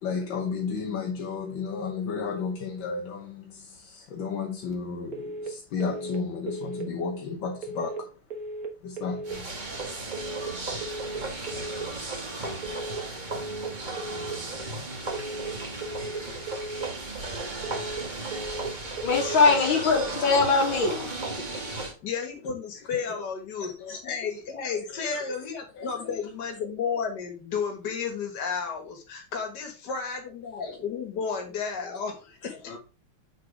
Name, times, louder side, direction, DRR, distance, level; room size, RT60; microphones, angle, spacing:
voice 1, 0.0-8.1 8.8-9.5 17.6-18.3 19.5-19.8 20.6-20.8 21.3-21.7 22.9-23.3 23.8-24.0 25.8-26.1 30.6-30.7, left 5 dB, 75° left, 1.7 m, -33 dB
sound 1, 5.1-5.5 5.8-6.2 6.5-6.9 7.6-8.0 8.3-8.7 9.0-9.4 10.1-10.5 10.8-11.2 11.5-11.9 12.6-13.0 13.3-13.7 14.0-14.4 15.1-15.5 15.8-16.2 16.5-16.9 17.6-18.0 18.3-18.7 19.0-19.4, right 2 dB, 50° right, 1.7 m, -36 dB
sound 2, 9.2-21.9, right 2 dB, 25° right, 1.5 m, -35 dB
voice 2, 19.0-21.1 32.7-32.8, left 4 dB, 90° left, 2.6 m, -22 dB
voice 3, 22.0-23.7 24.0-32.7, left 6 dB, 60° left, 2.1 m, -32 dB
6.6 x 4.1 x 4.7 m
omnidirectional pair, 2.1 m